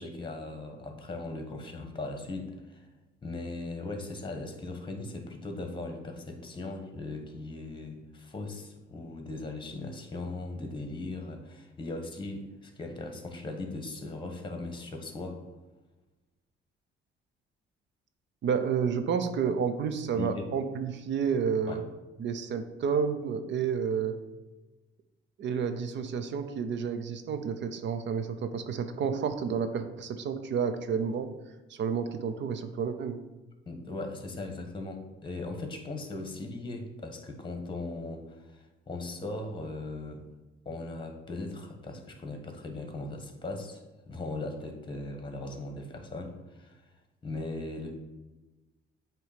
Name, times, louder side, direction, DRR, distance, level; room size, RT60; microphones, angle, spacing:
voice 1, 0.0-2.9 3.2-15.4 20.1-20.4 21.7-21.8 33.7-40.2 40.6-43.8 44.1-46.8 47.2-47.9, left 2 dB, 25° left, 5 dB, 1.3 m, -38 dB
voice 2, 18.4-21.9 22.2-24.2 25.4-31.3 31.7-33.2, right 6 dB, 65° right, 9 dB, 0.7 m, -30 dB
7.9 x 3.1 x 5.0 m, 1.1 s
cardioid pair, 90°, 20 cm